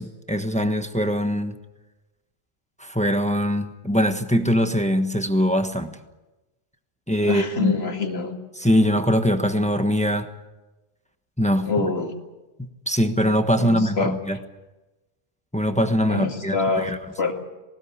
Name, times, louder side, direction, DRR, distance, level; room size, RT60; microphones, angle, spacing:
voice 1, 0.0-1.6 2.8-6.0 7.1-7.7 8.6-10.3 11.4-11.9 12.6-14.4 15.5-17.0, equal, 5° left, 7 dB, 1.2 m, -22 dB
voice 2, 7.2-8.3 11.7-12.1 13.6-14.1 16.1-16.9 17.2-17.3, left 4 dB, 60° left, 4 dB, 2.4 m, -25 dB
20.0 x 19.0 x 8.6 m, 1.1 s
omnidirectional pair, 1.2 m